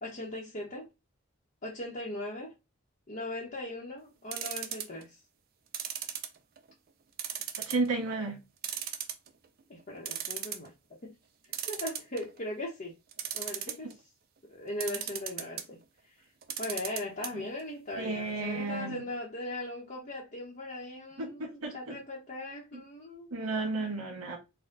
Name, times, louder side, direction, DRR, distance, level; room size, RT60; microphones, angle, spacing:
voice 1, 0.0-0.8 1.6-2.5 3.1-5.2 9.7-10.7 11.0-11.1 11.6-13.0 13.3-14.0 14.5-15.8 16.2-16.3 16.6-23.3 23.8-23.9, left 1 dB, 35° left, 0.9 m, -39 dB
sound 1, 4.3-5.0 5.7-6.7 7.2-7.9 8.2-8.3 8.6-9.5 9.8-9.9 10.1-10.7 11.5-12.4 13.1-13.9 14.8-15.7 16.4-17.3 17.6-17.7 17.9-18.0, right 10 dB, 45° right, 0.4 m, -36 dB
voice 2, 7.6-8.4 17.3-17.4 17.9-19.0 21.2-22.0 23.3-24.4, right 3 dB, 80° right, 1.6 m, -33 dB
4.2 x 2.2 x 3.8 m
head